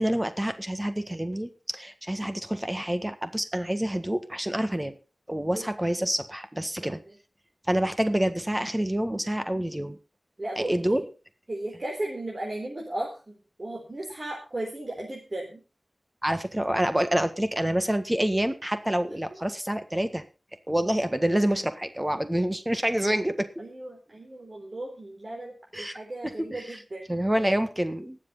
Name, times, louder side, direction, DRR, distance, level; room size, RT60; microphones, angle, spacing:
voice 1, 0.0-5.0 5.3-7.0 7.7-10.0 10.6-11.0 16.2-20.2 20.7-23.5 25.7-25.9 26.2-26.8 27.1-28.2, right 1 dB, 20° right, 9 dB, 1.6 m, -27 dB
voice 2, 10.4-11.0 11.5-15.6 23.6-27.0, right 1 dB, 50° right, -2 dB, 4.1 m, -35 dB
19.5 x 7.7 x 4.1 m, 0.31 s
wide cardioid pair, 55°, 0 cm